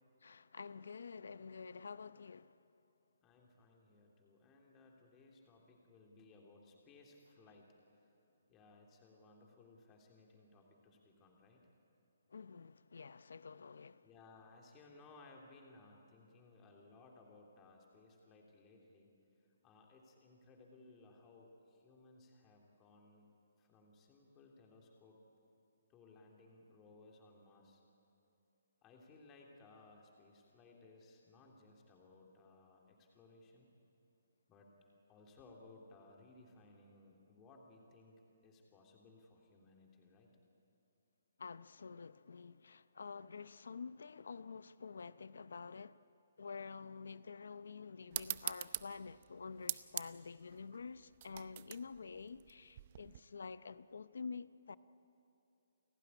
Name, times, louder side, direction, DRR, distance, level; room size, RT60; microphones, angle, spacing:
voice 1, 0.2-2.6 12.3-14.1 41.4-46.0 46.4-54.8, left 5 dB, 80° left, 0.7 m, -49 dB
voice 2, 3.2-7.8 8.5-11.6 14.0-19.1 19.6-23.2 23.6-25.2 25.9-27.8 28.8-33.7 34.5-34.7 35.1-38.2 38.4-40.3, left 3 dB, 20° left, 3.2 m, -62 dB
sound 1, 48.1-53.2, right 11 dB, 40° right, 0.7 m, -44 dB
29.5 x 15.5 x 9.9 m
hypercardioid pair, 160°, 0 cm